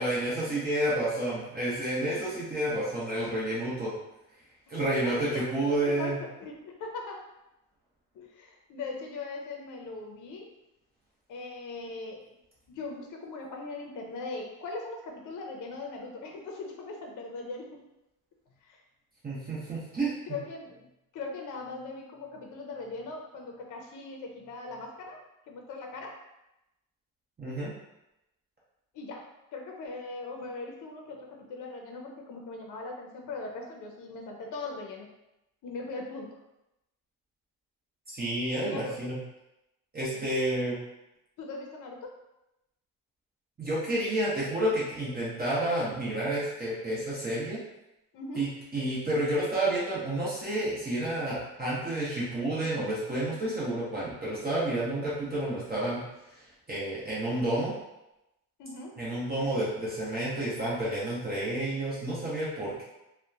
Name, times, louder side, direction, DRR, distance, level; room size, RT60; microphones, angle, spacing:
voice 1, 0.0-3.9 4.7-6.2 19.2-20.1 27.4-27.7 38.1-39.2 39.9-40.8 43.6-47.6 48.4-56.0 56.4-57.7 59.0-62.8, right 1 dB, 25° right, -8 dB, 0.8 m, -30 dB
voice 2, 5.0-5.4 5.8-7.3 8.1-10.5 11.3-12.2 12.7-17.8 18.6-18.8 20.3-20.9 21.1-26.2 28.9-35.1 35.6-36.4 38.6-39.0 40.1-40.3 41.4-42.1 48.1-48.5 58.6-58.9, left 3 dB, 60° left, 1 dB, 0.6 m, -40 dB
2.8 x 2.1 x 2.4 m, 0.91 s
cardioid pair, 125°, 36 cm